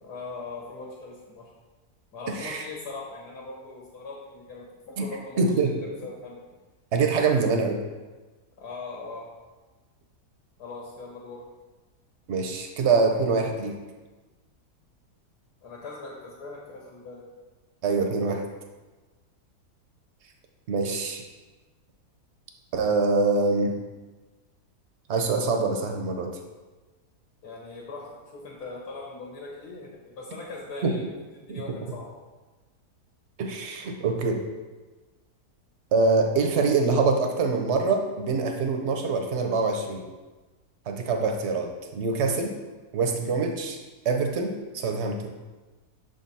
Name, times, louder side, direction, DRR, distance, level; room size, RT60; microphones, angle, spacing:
voice 1, 0.0-1.5 2.1-5.7 6.0-6.4 8.6-9.3 10.6-11.4 15.6-17.2 27.4-32.1, left 3 dB, 75° left, -3 dB, 1.5 m, -40 dB
voice 2, 2.3-2.7 5.0-5.1 5.4-5.8 6.9-7.8 12.3-13.8 17.8-18.4 20.7-21.2 22.7-23.7 25.1-26.4 30.8-31.0 31.5-31.6 33.4-34.5 35.9-40.0 40.9-42.6 42.9-43.8 44.0-45.3, right 4 dB, 60° right, 3 dB, 0.7 m, -25 dB
6.6 x 3.8 x 4.1 m, 1.2 s
omnidirectional pair, 1.8 m